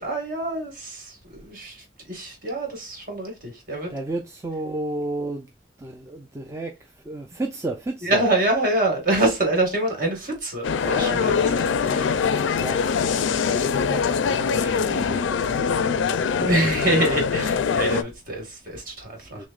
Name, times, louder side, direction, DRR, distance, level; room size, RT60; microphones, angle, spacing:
voice 1, 0.0-3.9 8.0-11.4 11.8-12.2 16.4-19.5, right 1 dB, 50° right, 1.6 m, -25 dB
voice 2, 3.9-5.5 5.8-8.2 10.8-11.6 12.6-12.8 13.4-16.5 19.3-19.5, right 2 dB, 15° right, 0.4 m, -33 dB
sound 1, 10.6-18.0, left 6 dB, 80° left, 0.4 m, -23 dB
6.2 x 2.1 x 2.4 m
head